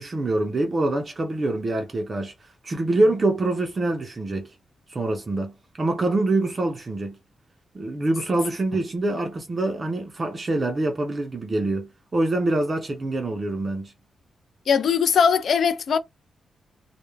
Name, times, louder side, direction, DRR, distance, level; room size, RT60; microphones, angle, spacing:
voice 1, 0.0-2.3 2.6-4.5 4.9-7.2 7.7-13.9, right 2 dB, 30° right, 0.4 m, -25 dB
voice 2, 14.7-16.0, left 6 dB, 60° left, 0.4 m, -20 dB
2.1 x 2.0 x 3.2 m
wide cardioid pair, 140°, 0 cm